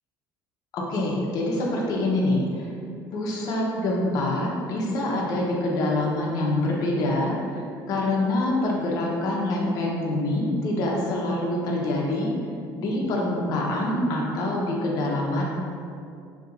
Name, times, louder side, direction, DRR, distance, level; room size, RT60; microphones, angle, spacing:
voice 1, 0.7-2.4 3.1-7.6 7.9-12.3 12.8-15.4, left 1 dB, 55° left, -2 dB, 0.9 m, -25 dB
6.3 x 2.8 x 2.6 m, 2.5 s
cardioid pair, 130°, 8 cm